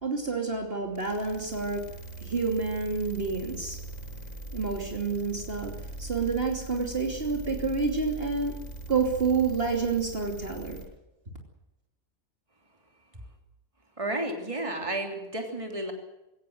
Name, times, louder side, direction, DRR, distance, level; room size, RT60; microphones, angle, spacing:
voice 1, 0.0-1.8 2.2-3.8 4.5-8.6 8.9-10.8, right 4 dB, 40° right, 2 dB, 3.0 m, -29 dB
sound 1, 1.0-10.8, right 2 dB, 60° left, 7.7 m, -41 dB
voice 2, 14.0-15.9, right 1 dB, 20° right, 3 dB, 3.3 m, -32 dB
21.5 x 17.0 x 7.9 m, 0.96 s
omnidirectional pair, 1.5 m